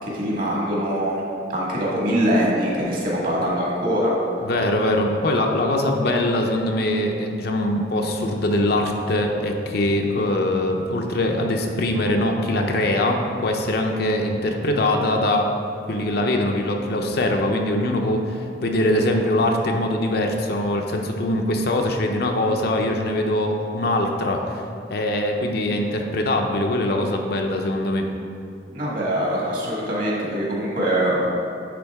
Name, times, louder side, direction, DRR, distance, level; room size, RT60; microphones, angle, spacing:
voice 1, 0.0-1.2 1.5-4.1 28.7-31.2, equal, 50° right, -4 dB, 1.6 m, -23 dB
voice 2, 4.4-15.5 15.9-24.6 24.9-28.1, left 1 dB, 60° left, 2 dB, 0.6 m, -22 dB
9.7 x 3.9 x 3.5 m, 2.6 s
head